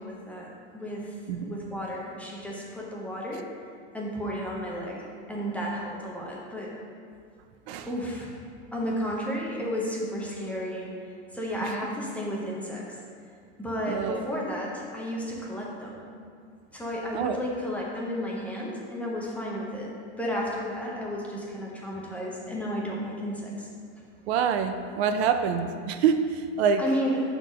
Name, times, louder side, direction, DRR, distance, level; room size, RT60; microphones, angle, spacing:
voice 1, 0.0-3.4 3.9-6.7 7.9-8.3 8.7-10.9 11.3-12.8 13.6-15.9 16.7-23.7 26.8-27.2, equal, 5° left, -4 dB, 0.6 m, -33 dB
voice 2, 13.9-14.2 17.1-17.4 24.3-26.8, right 7 dB, 65° right, 8 dB, 0.6 m, -26 dB
5.7 x 3.9 x 6.1 m, 2.2 s
supercardioid pair, 155°, 34 cm